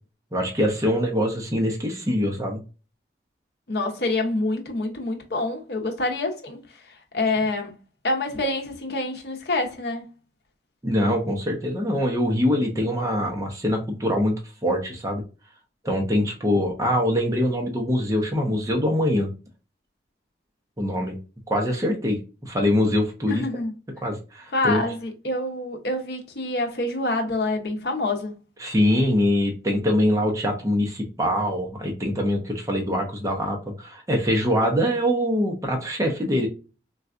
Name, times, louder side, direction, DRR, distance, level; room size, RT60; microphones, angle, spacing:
voice 1, 0.3-2.6 10.8-14.4 14.6-15.2 15.8-19.3 20.8-21.2 21.5-23.4 24.0-24.8 28.6-36.5, equal, 20° right, 0.6 m, -23 dB
voice 2, 3.7-6.6 7.1-7.8 8.0-10.1 23.3-23.7 24.5-28.3, left 2 dB, 60° left, 0.8 m, -26 dB
4.0 x 2.3 x 2.4 m
head